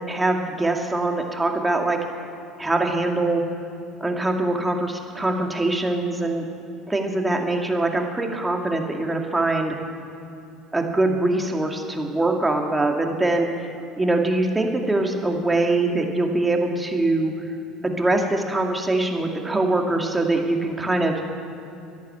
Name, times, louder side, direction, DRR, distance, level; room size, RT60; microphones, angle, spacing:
voice 1, 0.1-2.0 2.6-3.4 4.0-6.5 6.9-9.8 10.7-13.5 14.0-17.3 17.8-21.1, right 2 dB, 15° right, 2 dB, 2.2 m, -23 dB
13.0 x 11.0 x 8.6 m, 2.7 s
hypercardioid pair, 80°, 0 cm